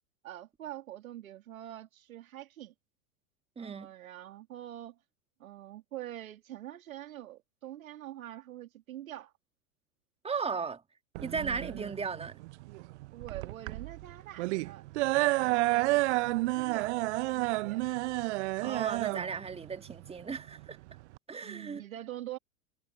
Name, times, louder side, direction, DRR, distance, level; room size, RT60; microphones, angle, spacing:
voice 1, 0.2-2.7 3.6-5.0 5.4-9.3 13.1-14.9 15.4-17.8 21.4-22.4, right 13 dB, 65° right, 2.2 m, -45 dB
voice 2, 3.6-3.9 10.2-10.8 11.2-12.4 18.6-20.8 21.3-21.8, right 5 dB, 15° right, 2.1 m, -36 dB
sound 1, 11.1-21.2, right 21 dB, 50° right, 1.0 m, -30 dB
figure-of-eight pair, 90°, 44 cm